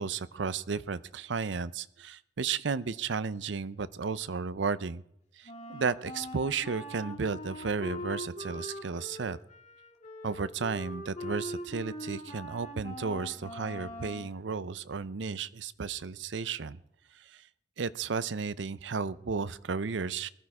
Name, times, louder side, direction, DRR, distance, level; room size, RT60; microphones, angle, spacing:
voice 1, 0.0-5.0 5.4-9.4 10.2-16.8 17.2-17.4 17.8-20.3, right 5 dB, 80° right, 17 dB, 0.6 m, -33 dB
Wind instrument woodwind instrument, 5.4-14.3, left 1 dB, 35° left, 2.3 m, -41 dB
19.5 x 13.5 x 4.8 m, 0.76 s
head